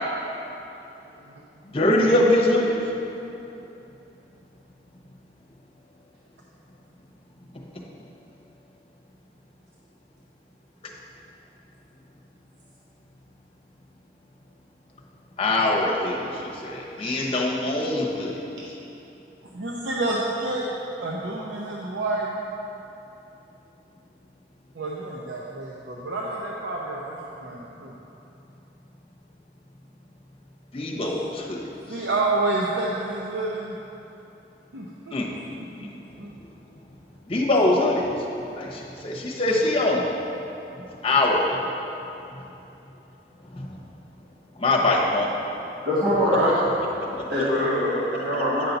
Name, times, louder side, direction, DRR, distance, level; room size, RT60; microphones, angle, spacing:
voice 1, 1.6-2.8 7.7-7.8 15.4-18.3 30.7-31.6 31.9-32.1 35.1-36.0 37.3-38.3 38.5-40.1 40.8-41.6 42.3-42.4 43.5-43.8 44.6-45.3 47.1-47.3, left 2 dB, 30° left, -2 dB, 0.9 m, -23 dB
voice 2, 17.0-17.3 19.5-20.6 21.0-22.4 24.7-27.9 31.0-31.1 31.9-33.8 34.7-35.2 35.6-35.9 36.2-36.3 46.2-46.5, right 2 dB, 90° right, -4 dB, 0.7 m, -29 dB
voice 3, 45.8-46.5 47.3-48.7, equal, 60° right, -12 dB, 1.8 m, -23 dB
9.1 x 5.7 x 4.0 m, 2.9 s
head